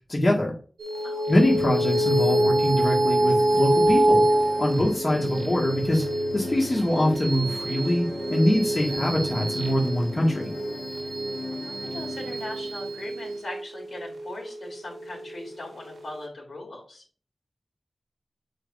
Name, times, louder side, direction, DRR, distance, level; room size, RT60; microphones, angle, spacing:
voice 1, 0.1-0.5 1.3-4.2 4.6-6.1 6.3-10.5, left 1 dB, 35° left, -3 dB, 2.0 m, -24 dB
sound 1, 0.8-15.6, right 1 dB, 90° right, 1.1 m, -26 dB
sound 2, 1.4-13.4, left 2 dB, 65° left, 1.7 m, -38 dB
voice 2, 11.6-17.0, left 2 dB, 85° left, -2 dB, 3.6 m, -40 dB
7.6 x 4.8 x 2.7 m, 0.39 s
wide cardioid pair, 75°, 0 cm